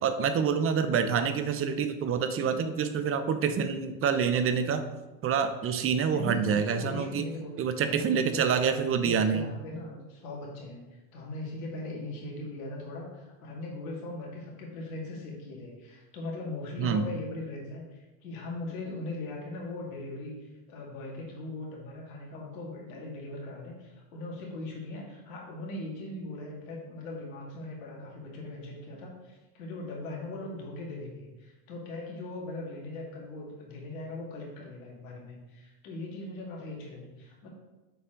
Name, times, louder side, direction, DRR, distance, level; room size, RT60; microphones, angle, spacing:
voice 1, 0.0-4.8 5.2-7.3 7.6-9.5 16.8-17.1, right 6 dB, 35° right, 10 dB, 0.7 m, -27 dB
voice 2, 6.1-7.5 7.8-8.5 8.9-10.8 11.1-37.5, left 2 dB, 75° left, -2 dB, 2.1 m, -40 dB
6.7 x 4.3 x 3.8 m, 1.1 s
hypercardioid pair, 85°, 40 cm